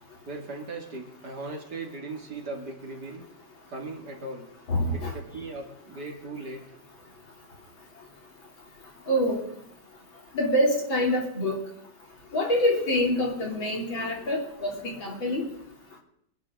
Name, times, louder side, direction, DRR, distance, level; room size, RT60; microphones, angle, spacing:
voice 1, 0.3-3.3 3.7-4.5 4.9-6.8, right 2 dB, 45° right, 1 dB, 2.8 m, -38 dB
voice 2, 4.7-5.1 9.1-9.4 10.3-11.6 12.3-15.5, left 1 dB, 60° left, -1 dB, 3.9 m, -26 dB
25.5 x 11.0 x 3.8 m, 0.73 s
omnidirectional pair, 2.4 m